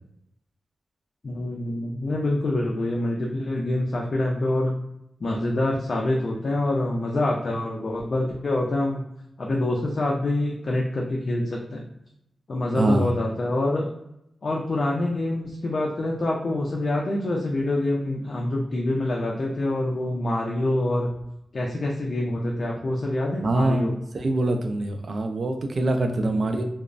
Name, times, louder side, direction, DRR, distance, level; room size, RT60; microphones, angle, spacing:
voice 1, 1.2-4.8 5.2-9.0 9.4-11.9 12.5-13.9 14.4-21.1 21.5-23.9 26.1-26.7, left 1 dB, 60° left, -1 dB, 0.4 m, -26 dB
voice 2, 12.7-13.1 23.4-26.7, right 2 dB, 60° right, 5 dB, 0.3 m, -24 dB
2.9 x 2.0 x 2.5 m, 0.82 s
cardioid pair, 65°, 0 cm